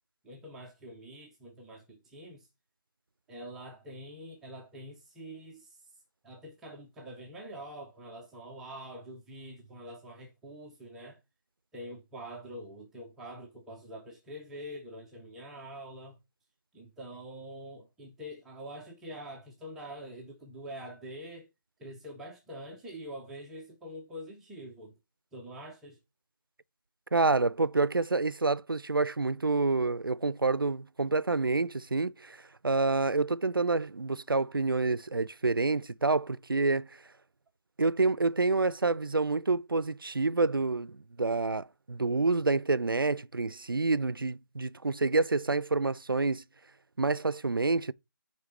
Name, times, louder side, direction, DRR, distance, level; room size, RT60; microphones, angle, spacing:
voice 1, 0.2-2.5 3.3-5.8 6.2-11.2 11.7-16.2 16.7-21.5 21.8-24.9 25.3-26.0, equal, 5° right, 0.3 m, -45 dB
voice 2, 27.1-36.9 37.8-46.4 47.0-47.9, right 3 dB, 85° right, 0.4 m, -28 dB
9.2 x 3.2 x 3.3 m
figure-of-eight pair, 150°, 11 cm